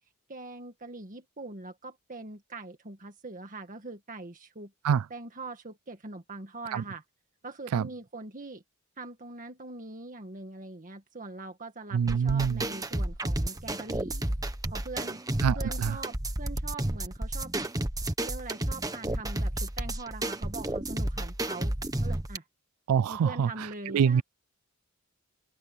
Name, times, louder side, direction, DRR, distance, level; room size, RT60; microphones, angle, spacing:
voice 1, 0.3-4.7 5.1-7.0 7.4-8.6 9.0-14.2 14.7-15.2 15.6-17.5 18.2-21.7 22.0-22.5 23.1-24.2, right 2 dB, 40° right, 1.7 m, -42 dB
voice 2, 11.9-12.6 15.4-16.0 22.9-23.5 23.9-24.2, right 7 dB, 80° right, 0.3 m, -25 dB
sound 1, 12.1-22.4, right 1 dB, 15° right, 1.4 m, -31 dB
open air
head